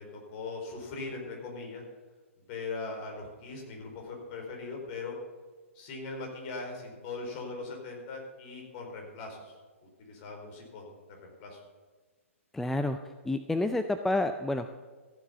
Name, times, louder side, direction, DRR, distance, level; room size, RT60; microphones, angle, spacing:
voice 1, 0.0-1.8 2.5-5.2 5.7-9.6 10.0-11.6, left 3 dB, 40° left, 1 dB, 4.3 m, -40 dB
voice 2, 12.5-13.0 13.2-14.7, left 2 dB, 5° left, 8 dB, 0.4 m, -29 dB
15.0 x 7.4 x 7.0 m, 1.4 s
figure-of-eight pair, 120°, 8 cm